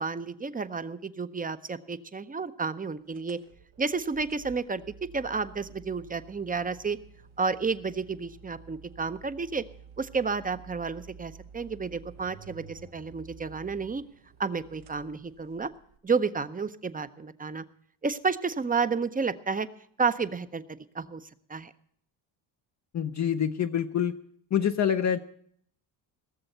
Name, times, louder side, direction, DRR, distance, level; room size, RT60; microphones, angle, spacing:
voice 1, 0.0-3.4 3.8-7.0 7.4-9.6 10.0-14.0 14.4-15.7 16.0-17.6 18.0-19.7 20.0-21.2 21.5-21.7, right 4 dB, 20° right, 13 dB, 0.6 m, -31 dB
sound 1, 3.1-16.0, right 6 dB, 85° right, 1.5 m, -51 dB
voice 2, 22.9-24.2 24.5-25.2, left 8 dB, 40° left, 6 dB, 0.6 m, -26 dB
18.0 x 7.0 x 7.8 m, 0.65 s
cardioid pair, 90°, 46 cm